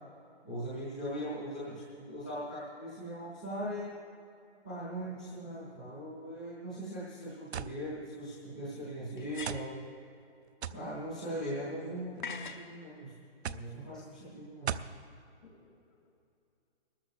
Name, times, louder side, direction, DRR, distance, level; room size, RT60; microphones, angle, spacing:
voice 1, 0.4-3.9 4.6-9.7 10.7-13.1 13.7-14.7, equal, 5° left, -10 dB, 0.7 m, -40 dB
Pot Lid, 7.3-7.4 9.2-9.8 12.2-12.7, left 5 dB, 45° left, 0.8 m, -42 dB
sound 1, 7.5-7.8 8.7-8.8 9.5-9.7 10.6-10.9 11.9-12.3 13.4-13.7 14.7-15.0, right 8 dB, 75° right, 0.5 m, -37 dB
voice 2, 13.4-13.8 15.4-16.1, right 2 dB, 90° left, 2 dB, 2.5 m, -49 dB
24.5 x 13.5 x 2.3 m, 2.6 s
hypercardioid pair, 175°, 33 cm